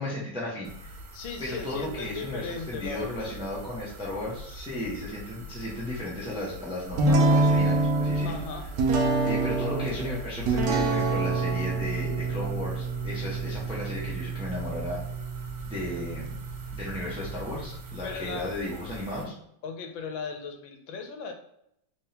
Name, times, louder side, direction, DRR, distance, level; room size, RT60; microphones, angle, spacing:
voice 1, 0.0-0.9 1.4-8.4 9.2-15.0 15.7-16.4 16.7-19.3, left 1 dB, 5° right, -5 dB, 0.5 m, -35 dB
sound 1, 0.6-19.2, equal, 90° right, 1.5 m, -44 dB
voice 2, 1.1-3.4 8.2-8.6 18.0-18.5 19.6-21.3, left 5 dB, 85° left, 5 dB, 1.4 m, -37 dB
sound 2, 7.0-18.4, right 3 dB, 65° right, 1.0 m, -27 dB
3.5 x 3.5 x 2.8 m, 0.76 s
omnidirectional pair, 2.1 m